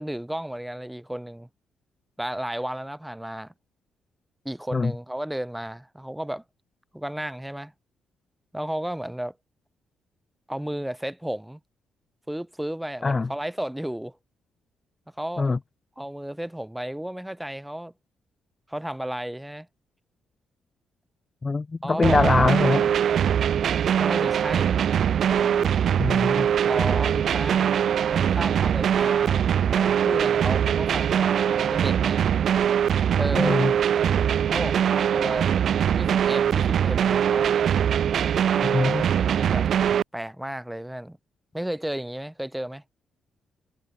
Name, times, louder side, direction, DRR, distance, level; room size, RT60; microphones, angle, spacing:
voice 1, 0.0-1.5 2.2-3.5 4.4-6.4 6.9-7.7 8.5-9.3 10.5-11.6 12.3-14.2 15.2-15.5 16.0-17.9 18.7-19.7 21.8-22.2 24.0-24.8 25.2-25.7 26.6-32.2 33.2-33.6 34.5-35.5 35.9-37.6 39.2-39.7 40.1-41.2 41.5-42.8, right 1 dB, 5° right, 5.2 m, -33 dB
voice 2, 21.4-22.9 26.0-26.5 33.4-33.7 38.6-39.1, left 4 dB, 30° left, 0.7 m, -23 dB
sound 1, 22.0-40.0, right 9 dB, 60° right, 0.3 m, -22 dB
cardioid pair, 90°, 0 cm